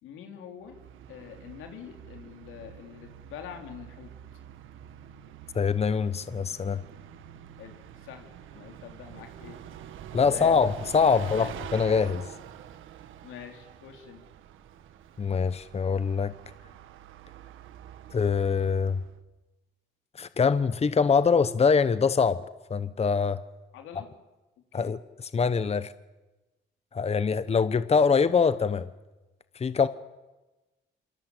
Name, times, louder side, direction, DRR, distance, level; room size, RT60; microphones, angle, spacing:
voice 1, 0.0-0.8 1.1-4.1 7.6-9.6 10.1-10.7 11.1-11.5 13.2-14.3 23.7-24.2 24.7-24.9, left 8 dB, 90° left, 5 dB, 4.1 m, -45 dB
Bus, 0.6-19.2, right 10 dB, 85° right, 1.7 m, -46 dB
voice 2, 5.5-6.8 10.1-12.3 15.2-16.3 18.1-19.0 20.2-22.4 22.7-23.4 24.7-25.9 26.9-28.9 29.5-29.9, left 5 dB, 30° left, 14 dB, 1.0 m, -24 dB
26.0 x 24.5 x 8.4 m, 1.1 s
cardioid pair, 90°, 20 cm